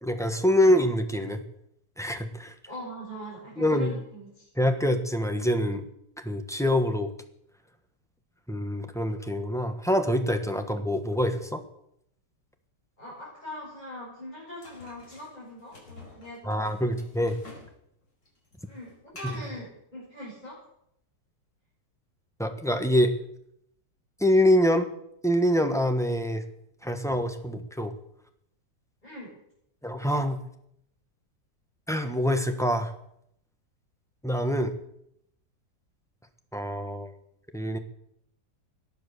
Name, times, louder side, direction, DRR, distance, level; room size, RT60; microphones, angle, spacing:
voice 1, 0.0-1.4 2.0-2.5 3.6-3.9 4.6-5.9 6.2-7.1 8.5-11.6 16.4-17.4 22.4-23.1 24.2-24.9 25.2-26.4 26.8-27.9 29.8-30.4 31.9-32.9 34.2-34.7 36.5-37.1 37.5-37.8, equal, ahead, 6 dB, 1.2 m, -25 dB
voice 2, 2.7-4.5 10.6-10.7 13.0-17.0 18.7-20.6 29.0-29.3, equal, 25° left, -8 dB, 7.8 m, -42 dB
sound 1, 14.6-17.8 18.0-19.6, left 2 dB, 70° left, 5.6 m, -49 dB
18.5 x 11.0 x 6.9 m, 0.75 s
omnidirectional pair, 1.9 m